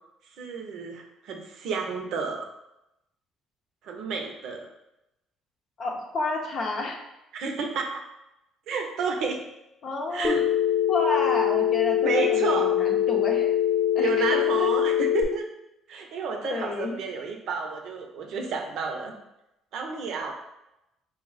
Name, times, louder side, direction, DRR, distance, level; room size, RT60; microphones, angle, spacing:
voice 1, 0.4-2.5 3.8-4.7 7.3-8.0 8.7-9.4 10.1-10.4 12.0-12.7 14.0-15.5 15.9-19.1 19.7-20.3, right 5 dB, 70° right, 3 dB, 0.6 m, -31 dB
voice 2, 5.8-7.0 9.8-10.3 10.9-13.5 13.9-14.7 16.4-17.0, left 3 dB, 55° left, 0 dB, 0.6 m, -30 dB
Telephone, 10.2-15.2, left 10 dB, 25° left, 0.8 m, -23 dB
4.0 x 2.0 x 3.9 m, 0.89 s
supercardioid pair, 85°, 0 cm